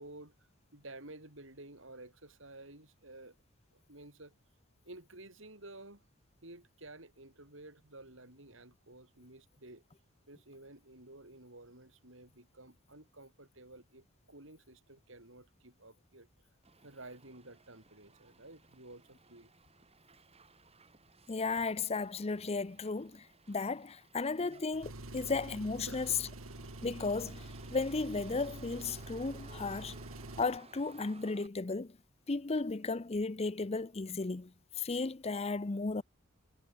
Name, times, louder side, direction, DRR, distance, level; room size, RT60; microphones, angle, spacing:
voice 1, 0.0-3.4 3.7-4.3 4.9-6.0 6.4-9.8 10.3-16.3 16.8-19.5 24.5-24.6 25.9-26.2, right 2 dB, 65° right, 6.0 m, -53 dB
Motor vehicle (road), 16.6-31.5, right 3 dB, 30° right, 2.7 m, -59 dB
voice 2, 21.3-26.1 26.8-29.9 30.4-31.9 32.3-34.5 34.8-36.0, left 3 dB, 30° left, 0.6 m, -35 dB
Engine, 24.7-30.6, right 1 dB, 85° right, 2.7 m, -47 dB
head